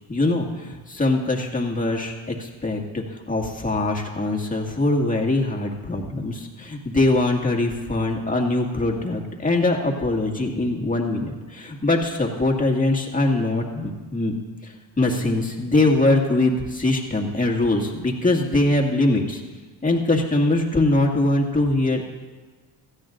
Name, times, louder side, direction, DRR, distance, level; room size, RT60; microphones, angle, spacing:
voice 1, 0.1-14.3 14.6-19.4 19.8-22.0, left 2 dB, 20° left, 0 dB, 2.1 m, -22 dB
17.0 x 14.0 x 2.6 m, 1.3 s
supercardioid pair, 75°, 45 cm